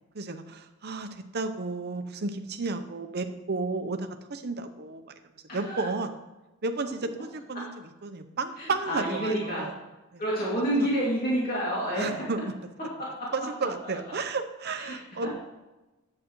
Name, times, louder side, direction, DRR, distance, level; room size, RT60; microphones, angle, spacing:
voice 1, 0.1-5.1 5.5-6.2 6.6-7.7 8.0-9.7 10.1-10.2 10.8-10.9 12.0-12.4 13.3-15.3, right 3 dB, 50° right, 7 dB, 0.8 m, -32 dB
voice 2, 5.5-5.9 8.6-9.7 10.2-12.3 13.0-13.3 14.9-15.0 15.2-15.3, right 1 dB, 45° left, -7 dB, 2.5 m, -29 dB
11.0 x 8.6 x 3.1 m, 1.1 s
head